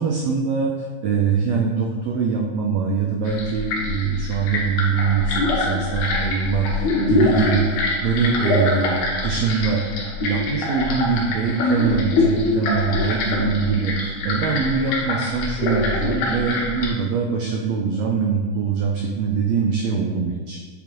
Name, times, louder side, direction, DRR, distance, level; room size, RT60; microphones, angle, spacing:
voice 1, 0.0-7.7 8.0-9.8 10.2-20.6, right 5 dB, 90° right, 0 dB, 1.5 m, -23 dB
sound 1, 3.3-16.9, left 2 dB, 75° left, 2.4 m, -24 dB
8.2 x 3.9 x 3.0 m, 1.5 s
omnidirectional pair, 3.6 m